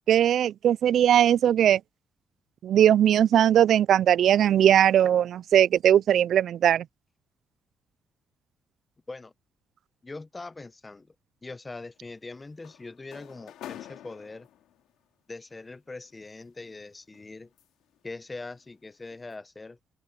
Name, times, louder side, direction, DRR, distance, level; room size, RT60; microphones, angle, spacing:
voice 1, 0.1-1.8 2.6-6.8, right 10 dB, 70° right, 0.3 m, -20 dB
voice 2, 10.0-11.1 11.4-14.5 15.3-17.5 18.0-19.8, left 3 dB, 20° left, 1.0 m, -42 dB
sound 1, 12.0-14.9 16.0-18.0 18.4-18.7 19.1-19.3, left 12 dB, 85° left, 2.4 m, -47 dB
open air
cardioid pair, 90°, 0 cm